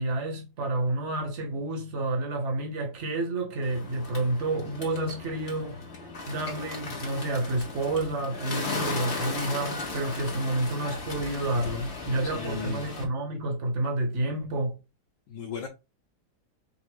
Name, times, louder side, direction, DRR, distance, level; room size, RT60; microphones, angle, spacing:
voice 1, 0.0-5.8 6.3-14.8, right 2 dB, 40° right, 1.4 m, -29 dB
Bird, 3.6-13.0, left 3 dB, 40° left, 1.3 m, -36 dB
voice 2, 12.2-12.9 15.3-15.7, left 7 dB, 70° left, 1.4 m, -36 dB
5.5 x 2.4 x 3.3 m
omnidirectional pair, 2.1 m